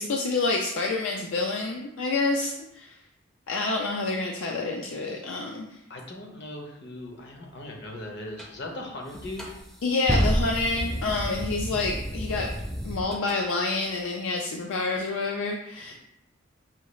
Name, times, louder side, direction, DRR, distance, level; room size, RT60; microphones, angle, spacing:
voice 1, 0.0-2.9 3.5-5.7 9.8-12.5 12.8-15.9, left 3 dB, 80° left, 0 dB, 0.4 m, -28 dB
voice 2, 5.9-9.5, left 1 dB, 60° left, 1 dB, 0.8 m, -39 dB
sound 1, 8.4-8.5 9.1-13.4, equal, ahead, 0.4 m, -30 dB
5.6 x 2.3 x 3.1 m, 0.85 s
head